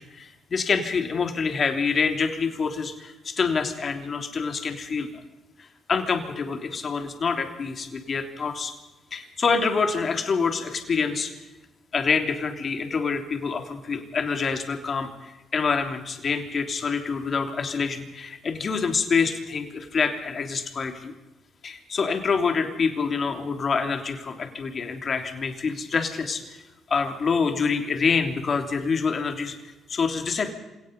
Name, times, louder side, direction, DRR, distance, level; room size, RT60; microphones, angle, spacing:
voice 1, 0.0-5.1 5.6-8.7 9.1-11.3 11.9-21.1 21.6-26.6 26.9-29.5 29.9-30.5, left 5 dB, 45° left, 5 dB, 3.2 m, -26 dB
27.0 x 18.0 x 5.4 m, 1.0 s
cardioid pair, 90°, 0 cm